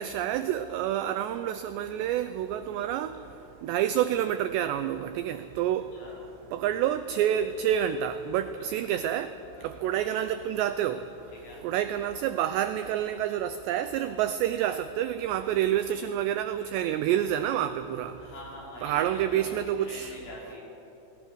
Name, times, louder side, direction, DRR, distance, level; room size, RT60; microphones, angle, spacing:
voice 1, 0.0-3.2 3.6-5.9 6.5-9.3 9.6-11.0 11.6-18.1 18.8-20.1, right 10 dB, 90° right, 2.4 m, -28 dB
voice 2, 8.6-9.1 9.6-9.8 11.3-11.6 18.2-20.6, left 1 dB, 80° left, 8.3 m, -45 dB
29.0 x 20.0 x 6.3 m
omnidirectional pair, 5.8 m